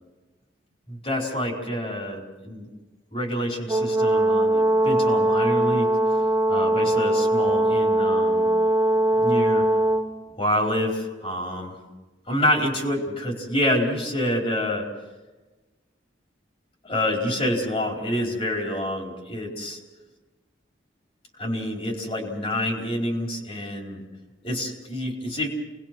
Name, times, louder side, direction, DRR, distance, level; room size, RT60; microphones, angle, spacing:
voice 1, 0.9-2.7 3.1-5.9 6.5-8.5 9.2-9.7 10.4-11.8 12.3-14.9 16.8-19.8 21.4-24.0 24.4-25.5, left 1 dB, 30° left, 0 dB, 4.6 m, -27 dB
Brass instrument, 3.7-10.1, right 1 dB, 20° right, 1.2 m, -21 dB
29.0 x 20.5 x 6.2 m, 1.2 s
head